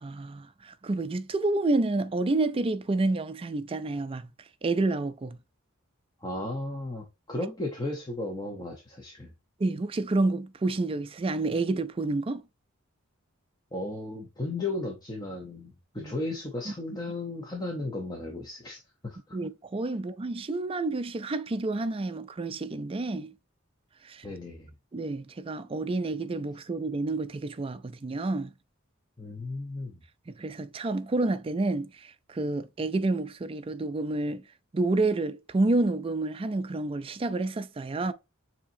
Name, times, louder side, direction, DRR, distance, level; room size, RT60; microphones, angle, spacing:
voice 1, 0.0-4.3 4.6-5.4 9.6-12.4 16.0-16.1 16.7-16.8 19.3-23.3 24.0-24.2 24.9-28.5 30.3-34.4 34.7-38.1, right 2 dB, 25° right, 0.4 m, -29 dB
voice 2, 6.2-9.3 13.7-19.4 24.2-24.7 29.2-30.0, left 2 dB, 20° left, 0.8 m, -35 dB
7.1 x 2.9 x 2.6 m
head